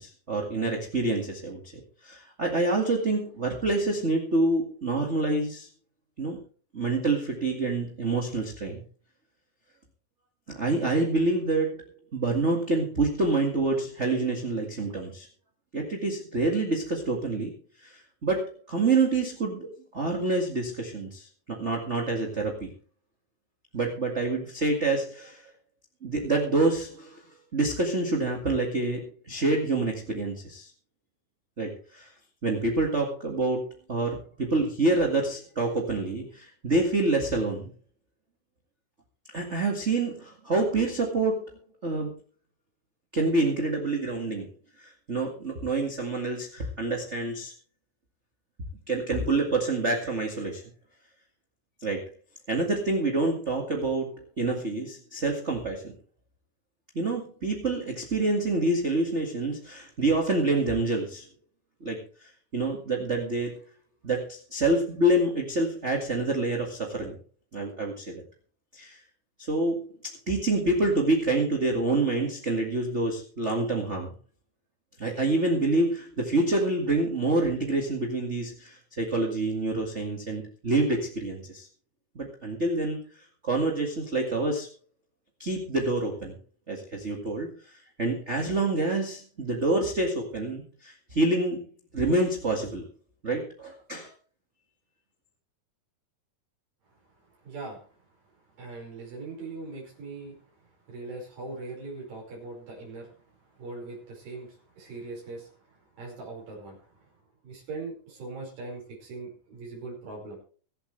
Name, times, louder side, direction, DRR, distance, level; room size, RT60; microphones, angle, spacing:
voice 1, 0.0-1.6 2.0-5.7 6.2-6.4 6.7-8.8 10.5-11.9 12.1-15.3 15.7-17.5 17.8-18.4 18.7-19.7 19.9-21.3 21.6-22.7 23.7-25.4 26.0-27.2 27.5-29.0 29.3-30.7 31.6-32.1 32.4-33.6 33.9-37.7 39.3-41.4 41.8-42.1 43.1-44.5 44.8-47.5 48.9-50.6 51.8-52.0 52.5-54.1 54.4-55.8 56.9-61.2 61.8-63.5 64.0-67.1 67.5-68.2 68.7-69.0 69.4-69.8 70.3-74.1 75.0-81.7 82.1-83.0 83.4-84.7 85.4-86.3 86.7-87.5 88.0-91.6 91.9-92.8 93.2-94.1, right 2 dB, 25° right, 1 dB, 1.7 m, -27 dB
voice 2, 96.9-97.9 98.6-107.1 107.4-110.4, right 3 dB, 75° right, -3 dB, 7.0 m, -41 dB
24.0 x 8.1 x 3.4 m, 0.41 s
omnidirectional pair, 4.0 m